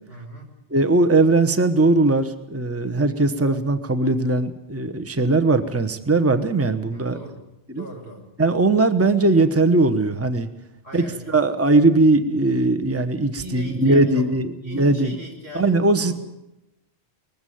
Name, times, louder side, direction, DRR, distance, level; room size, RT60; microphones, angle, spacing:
voice 1, 0.1-0.5 6.9-7.4 7.8-8.2 10.8-11.4 13.4-14.3 14.6-15.7 16.0-16.1, equal, 85° right, 0 dB, 5.7 m, -38 dB
voice 2, 0.7-7.2 7.7-7.8 8.4-10.5 10.9-15.2 15.5-16.1, right 2 dB, 15° right, 10 dB, 1.0 m, -19 dB
20.0 x 15.0 x 9.2 m, 0.90 s
omnidirectional pair, 1.0 m